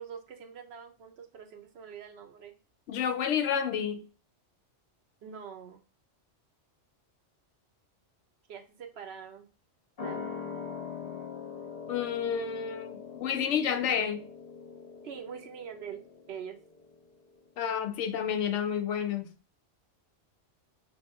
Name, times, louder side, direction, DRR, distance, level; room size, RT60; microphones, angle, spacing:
voice 1, 0.0-2.5 5.2-5.8 8.5-9.5 10.0-10.3 15.0-16.0 16.3-16.6, right 7 dB, 65° right, 0.8 m, -44 dB
voice 2, 2.9-4.0 11.9-14.2 17.6-19.3, left 8 dB, 80° left, 0.9 m, -30 dB
sound 1, 10.0-17.0 17.3-17.4, left 6 dB, 55° left, 1.0 m, -42 dB
3.0 x 2.7 x 3.3 m
omnidirectional pair, 1.2 m